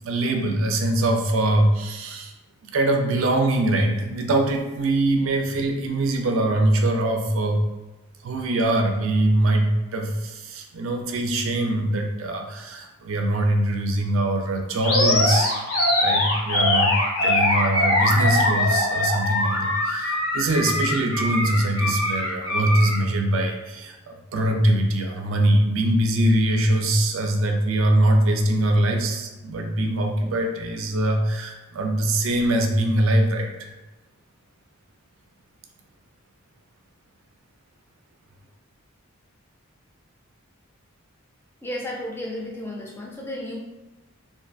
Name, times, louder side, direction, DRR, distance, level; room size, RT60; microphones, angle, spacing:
voice 1, 0.0-2.3 2.7-7.6 8.2-15.5 16.0-16.9 17.2-33.7, right 1 dB, 70° right, 3 dB, 0.4 m, -22 dB
Animal, 14.8-23.0, left 1 dB, 80° left, 0.7 m, -22 dB
voice 2, 41.6-43.6, left 1 dB, 10° left, -2 dB, 0.3 m, -33 dB
2.5 x 2.3 x 2.5 m, 1.1 s
head